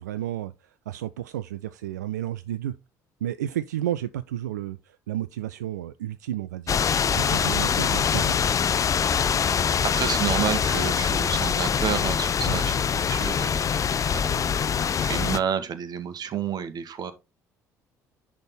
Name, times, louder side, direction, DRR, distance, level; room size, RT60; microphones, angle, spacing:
voice 1, 0.0-2.8 3.2-6.8 7.1-8.4 12.5-12.6, right 12 dB, 85° right, 0.4 m, -32 dB
sound 1, 6.7-15.4, left 7 dB, 35° left, 0.6 m, -24 dB
voice 2, 9.8-17.1, right 8 dB, 50° right, 1.3 m, -30 dB
10.5 x 3.6 x 4.2 m
hypercardioid pair, 55°, 9 cm